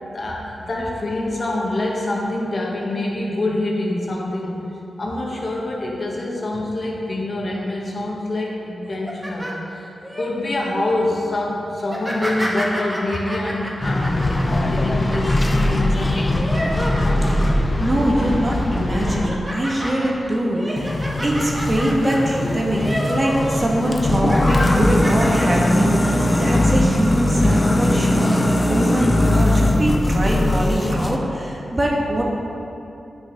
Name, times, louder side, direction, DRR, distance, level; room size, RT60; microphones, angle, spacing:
voice 1, 0.1-4.7 5.0-9.5 10.2-16.5 17.4-17.5, left 1 dB, 50° left, -2 dB, 1.8 m, -25 dB
sound 1, 8.8-10.3 10.7-11.0 11.8-17.6 17.9-18.4 18.8-23.5 23.8-25.7 26.1-26.3 27.0-27.6, equal, 20° right, 1.7 m, -30 dB
sound 2, 13.8-19.3 20.8-31.2, left 1 dB, 30° left, 0.8 m, -20 dB
voice 2, 17.8-28.4 28.7-32.2, right 1 dB, 35° right, -2 dB, 1.8 m, -23 dB
9.5 x 6.1 x 5.4 m, 2.8 s
cardioid pair, 65°, 0 cm